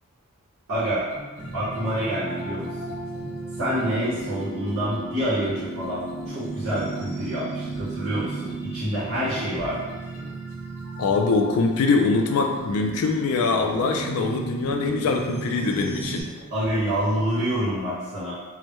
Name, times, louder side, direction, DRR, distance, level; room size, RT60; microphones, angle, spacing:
voice 1, 0.7-1.1 1.5-2.9 3.6-9.9 16.5-18.3, equal, 55° right, -10 dB, 0.8 m, -27 dB
sound 1, 0.8-17.6, equal, 15° right, 0.9 m, -45 dB
sound 2, 1.4-16.2, right 3 dB, 25° left, 0.5 m, -35 dB
sound 3, 2.0-12.7, right 1 dB, 85° right, 0.7 m, -42 dB
voice 2, 11.0-16.3, left 4 dB, 80° left, 3 dB, 0.3 m, -23 dB
2.1 x 2.0 x 2.9 m, 1.2 s
head